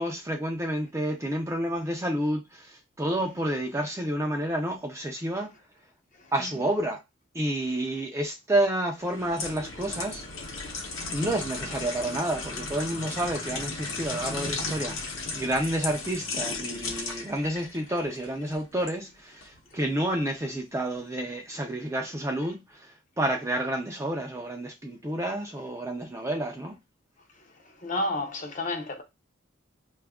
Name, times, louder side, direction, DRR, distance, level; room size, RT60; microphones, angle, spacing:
voice 1, 0.0-5.5 6.3-7.0 7.3-10.2 11.1-26.8, right 1 dB, 15° right, 0.3 m, -30 dB
sound 1, 9.0-19.0 19.4-19.6, left 3 dB, 70° left, 0.8 m, -35 dB
voice 2, 27.8-29.0, left 2 dB, 35° left, 0.5 m, -30 dB
2.7 x 2.4 x 3.4 m
head